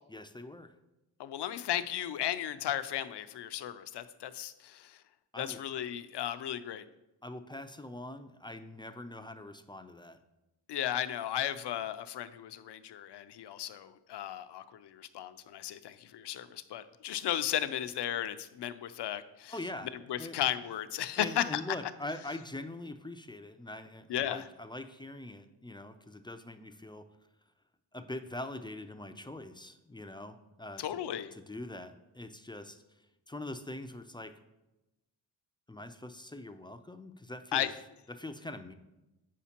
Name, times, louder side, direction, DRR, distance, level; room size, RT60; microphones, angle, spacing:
voice 1, 0.1-0.7 5.3-5.6 7.2-10.2 19.5-19.9 20.2-20.4 21.2-27.1 27.9-30.8 31.3-32.8 33.3-34.4 35.7-37.7 38.1-38.7, left 1 dB, 10° left, 8 dB, 0.3 m, -43 dB
voice 2, 1.2-5.0 5.4-6.9 10.7-19.5 20.1-21.6 24.1-24.5 30.8-31.3 37.5-37.7, left 11 dB, 70° left, 12 dB, 0.5 m, -35 dB
8.2 x 5.0 x 2.9 m, 0.96 s
cardioid pair, 80°, 43 cm